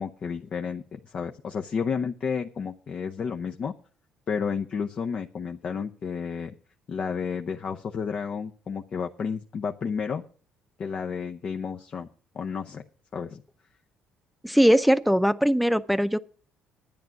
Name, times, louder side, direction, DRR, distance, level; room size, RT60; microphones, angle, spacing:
voice 1, 0.0-3.7 4.3-6.5 6.9-10.2 10.8-12.1 12.3-12.8 13.1-13.4, left 6 dB, 50° left, 3 dB, 0.7 m, -31 dB
voice 2, 14.4-16.2, equal, ahead, 11 dB, 0.7 m, -20 dB
10.5 x 9.4 x 5.9 m, 0.43 s
supercardioid pair, 70°, 3 cm